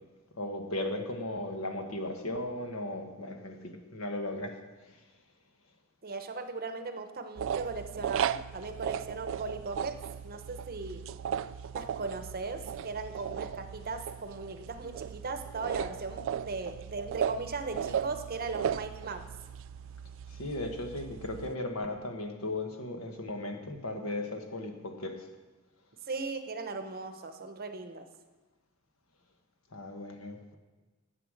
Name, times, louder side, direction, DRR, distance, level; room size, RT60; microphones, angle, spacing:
voice 1, 0.4-4.6 20.3-25.2 29.7-30.5, left 1 dB, 70° left, 4 dB, 1.4 m, -36 dB
voice 2, 6.0-10.0 10.2-11.0 11.7-19.2 26.1-28.0, right 3 dB, 45° right, 8 dB, 0.9 m, -38 dB
sound 1, 7.4-21.5, right 8 dB, 60° right, 0.3 m, -36 dB
12.0 x 8.0 x 6.4 m, 1.2 s
head